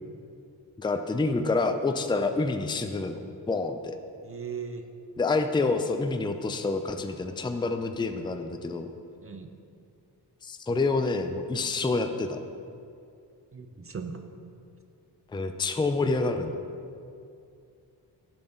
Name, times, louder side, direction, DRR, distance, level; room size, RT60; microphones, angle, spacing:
voice 1, 0.8-3.2 3.5-4.0 5.2-8.9 10.4-12.4 15.3-16.5, left 3 dB, 10° left, 7 dB, 0.5 m, -27 dB
voice 2, 4.2-4.8 9.2-9.5 13.5-14.2, right 6 dB, 30° right, 6 dB, 0.7 m, -38 dB
10.5 x 6.1 x 3.9 m, 2.5 s
cardioid pair, 60°, 42 cm